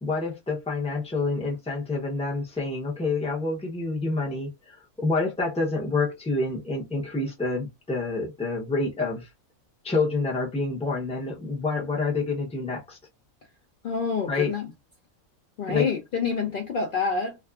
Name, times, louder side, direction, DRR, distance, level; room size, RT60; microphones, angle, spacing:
voice 1, 0.0-9.3 9.8-13.0 14.3-14.5 15.7-15.9, left 3 dB, 5° left, 0.5 m, -28 dB
voice 2, 13.8-14.7 15.6-17.4, left 5 dB, 80° left, 0.4 m, -27 dB
2.5 x 2.4 x 2.3 m
omnidirectional pair, 1.5 m